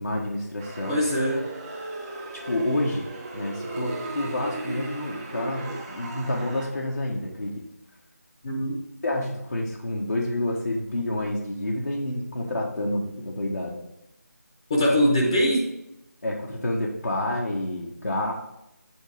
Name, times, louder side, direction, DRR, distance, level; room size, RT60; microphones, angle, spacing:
voice 1, 0.0-1.0 2.4-3.1 3.3-7.6 9.0-13.8 16.2-18.3, left 1 dB, 85° left, -2 dB, 1.6 m, -28 dB
sound 1, 0.6-6.7, right 2 dB, 20° right, 1.0 m, -36 dB
voice 2, 0.9-1.5 8.4-8.8 14.7-15.6, equal, 20° left, -2 dB, 0.9 m, -22 dB
8.7 x 4.0 x 5.1 m, 0.87 s
figure-of-eight pair, 170°, 9 cm